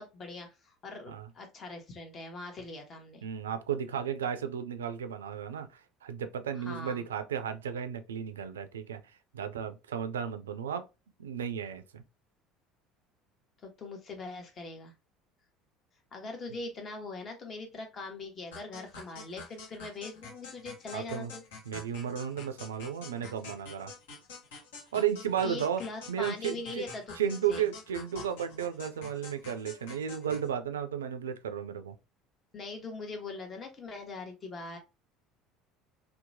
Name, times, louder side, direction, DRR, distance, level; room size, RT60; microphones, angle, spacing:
voice 1, 0.0-3.2 6.5-7.0 13.6-14.9 16.1-21.4 25.4-27.0 27.5-27.6 32.5-34.8, left 3 dB, 40° left, 1.0 m, -41 dB
voice 2, 3.2-9.0 9.3-10.9 11.2-12.0 20.9-21.3 21.7-23.9 24.9-25.8 26.1-26.8 27.2-32.0, right 8 dB, 80° right, 0.3 m, -34 dB
sound 1, 18.5-30.5, left 3 dB, 75° left, 0.9 m, -47 dB
2.8 x 2.1 x 2.6 m
hypercardioid pair, 65°, 0 cm